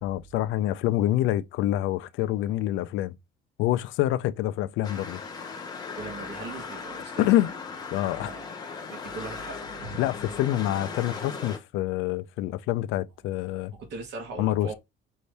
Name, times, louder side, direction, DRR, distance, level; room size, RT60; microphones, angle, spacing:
voice 1, 0.0-3.1 3.6-5.2 7.2-7.5 7.9-8.3 10.0-13.7 14.4-14.7, left 14 dB, 85° left, 0.5 m, -26 dB
sound 1, 4.8-11.6, left 5 dB, 20° left, 0.9 m, -38 dB
voice 2, 5.9-7.3 8.1-8.5 8.9-10.0 13.7-14.7, right 3 dB, 65° right, 1.4 m, -39 dB
5.5 x 2.6 x 3.3 m
cardioid pair, 160°, 20 cm